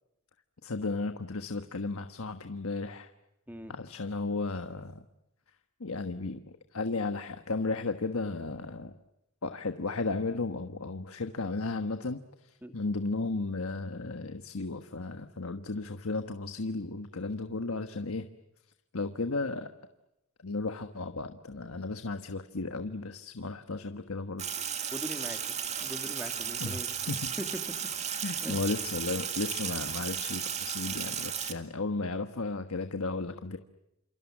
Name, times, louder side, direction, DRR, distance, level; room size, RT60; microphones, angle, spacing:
voice 1, 0.6-3.1 3.7-5.0 5.8-8.9 9.4-18.3 18.9-19.7 20.4-24.4 26.6-26.8 27.1-27.3 28.1-33.6, left 3 dB, 85° left, 8 dB, 1.3 m, -34 dB
Sink (filling or washing), 24.4-31.5, right 8 dB, 30° right, 2.1 m, -34 dB
voice 2, 24.9-27.5 28.4-28.6, equal, 10° right, 7 dB, 2.2 m, -42 dB
28.5 x 28.0 x 7.3 m, 0.90 s
head